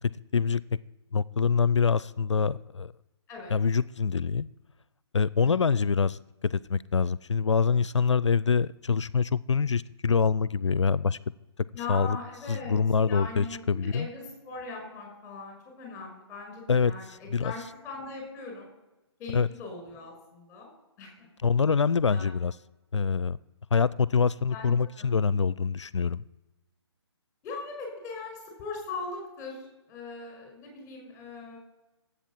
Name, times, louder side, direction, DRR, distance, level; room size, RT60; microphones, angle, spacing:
voice 1, 1.1-2.9 3.5-4.5 5.1-11.2 11.9-12.2 12.5-14.1 16.7-17.5 19.3-19.5 21.4-22.6 22.9-23.4 23.7-26.2, left 5 dB, 80° left, 20 dB, 0.5 m, -25 dB
voice 2, 11.7-12.8 13.0-18.7 19.2-20.7 21.0-21.3 22.1-22.3 24.5-25.2 27.4-29.6 29.9-31.6, left 3 dB, 20° left, 2 dB, 5.5 m, -40 dB
14.0 x 8.4 x 7.4 m, 1.0 s
figure-of-eight pair, 140°, 15 cm